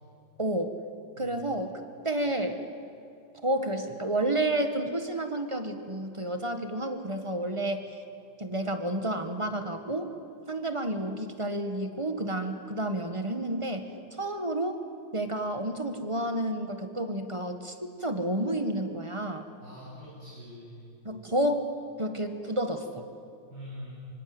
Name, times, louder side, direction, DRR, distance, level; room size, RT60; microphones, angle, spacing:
voice 1, 0.4-0.8 1.2-2.6 3.4-8.0 8.4-10.1 10.5-14.8 15.1-19.5 21.0-21.6 22.0-23.1, right 1 dB, 15° right, 7 dB, 1.7 m, -30 dB
voice 2, 19.6-20.8 23.5-23.9, equal, 70° right, -8 dB, 8.9 m, -44 dB
25.5 x 25.0 x 8.0 m, 2.7 s
omnidirectional pair, 2.0 m